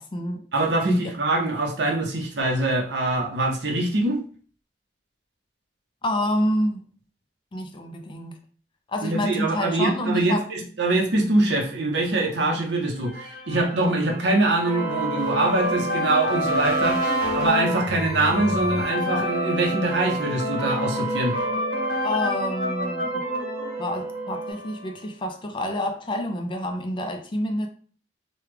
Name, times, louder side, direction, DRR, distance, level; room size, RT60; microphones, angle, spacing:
voice 1, 0.0-0.4 0.8-1.1 6.0-6.8 7.5-8.4 8.9-10.5 17.1-17.4 22.0-23.2 23.8-27.7, left 1 dB, 30° left, 0.4 m, -28 dB
voice 2, 0.5-4.2 9.0-17.0 17.3-21.4, right 2 dB, 75° right, 0.8 m, -23 dB
sound 1, 13.1-24.8, equal, 65° left, 1.0 m, -28 dB
sound 2, 15.2-24.5, right 3 dB, 20° right, 0.8 m, -35 dB
3.0 x 2.3 x 3.4 m
head